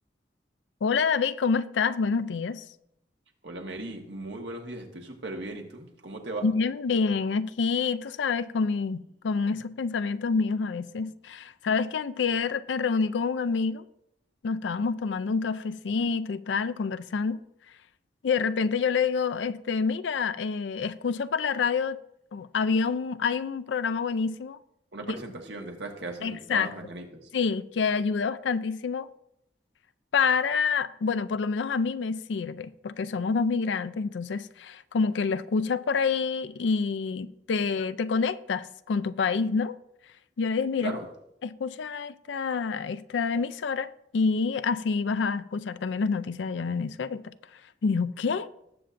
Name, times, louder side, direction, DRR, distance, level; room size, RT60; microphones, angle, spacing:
voice 1, 0.8-2.7 6.4-13.8 14.4-17.4 18.2-22.0 22.3-24.6 26.2-26.7 27.3-29.1 30.1-39.8 40.4-41.0 41.4-47.3 47.8-48.5, left 5 dB, 90° left, 0.4 m, -27 dB
voice 2, 3.4-6.5 24.9-27.3 40.8-41.0, right 2 dB, 75° right, 1.5 m, -37 dB
19.0 x 6.9 x 2.6 m
head